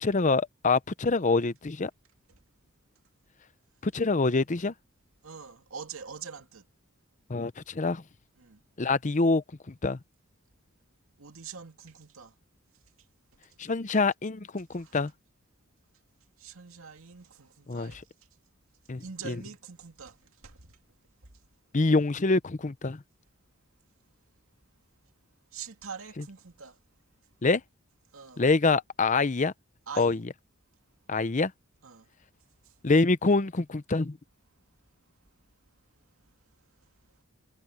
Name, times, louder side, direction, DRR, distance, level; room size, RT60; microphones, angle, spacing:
voice 1, 0.0-1.9 3.8-4.7 7.3-8.0 8.8-10.0 13.6-15.1 17.7-18.0 18.9-19.4 21.7-23.0 27.4-27.6 28.4-29.5 30.0-30.2 31.1-31.5 32.8-34.2, left 3 dB, 35° left, 0.7 m, -25 dB
voice 2, 5.2-6.7 8.4-8.6 11.2-12.3 14.7-15.0 16.4-18.0 19.0-20.8 25.5-26.8 28.1-28.4 29.9-30.2 31.8-32.1 32.6-32.8, right 6 dB, 85° right, 2.4 m, -44 dB
head